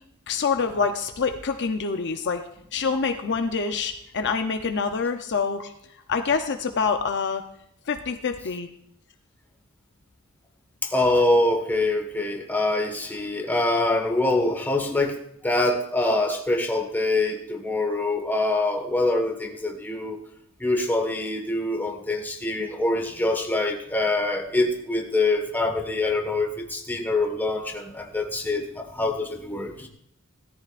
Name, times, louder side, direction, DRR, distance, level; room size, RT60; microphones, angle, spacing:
voice 1, 0.3-2.4 2.7-5.7 6.1-7.4 7.9-8.7, left 5 dB, 55° left, 6 dB, 0.7 m, -26 dB
voice 2, 10.8-15.2 15.4-20.2 20.6-29.9, left 2 dB, 10° left, 2 dB, 1.5 m, -24 dB
17.5 x 13.5 x 2.5 m, 0.73 s
head